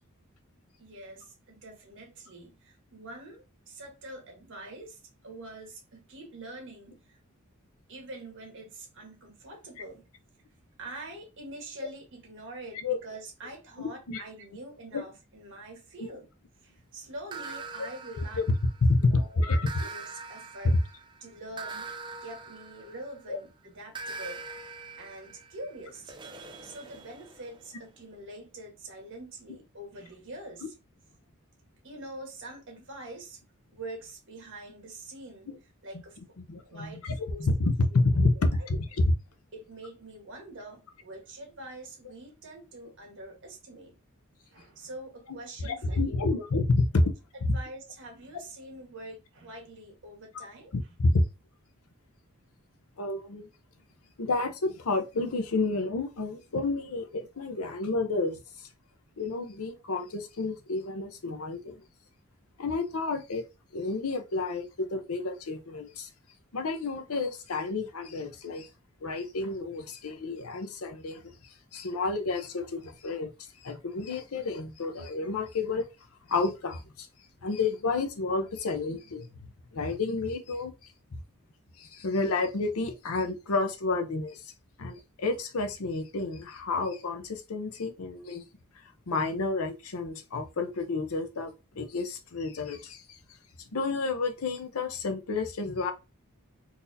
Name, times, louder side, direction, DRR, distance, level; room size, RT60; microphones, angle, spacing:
voice 1, 0.8-7.2 7.9-10.1 10.8-16.3 16.6-18.4 19.0-20.8 21.2-21.9 22.2-24.4 25.0-26.1 26.6-30.7 31.8-33.4 33.7-35.5 35.8-36.2 36.6-37.5 37.9-38.0 38.3-38.7 39.5-44.0 44.4-46.4 47.0-50.7, right 1 dB, 60° right, 1.3 m, -45 dB
voice 2, 13.8-14.2 14.9-15.0 16.0-16.1 18.9-19.9 23.3-23.4 35.5-35.6 36.5-38.3 38.7-38.8 45.6-47.0 50.3-50.4 50.7-51.3 53.0-53.5 54.2-58.4 59.2-61.8 62.6-63.4 63.7-66.1 66.5-68.7 69.0-71.2 71.7-73.3 73.6-75.8 76.3-77.1 77.4-80.7 81.8-84.5 84.8-88.4 89.1-93.2 93.6-95.9, left 3 dB, 75° left, 0.7 m, -30 dB
sound 1, 17.3-19.0 19.7-23.3 24.0-27.7, right 4 dB, 20° right, 0.4 m, -43 dB
4.0 x 2.7 x 2.6 m
head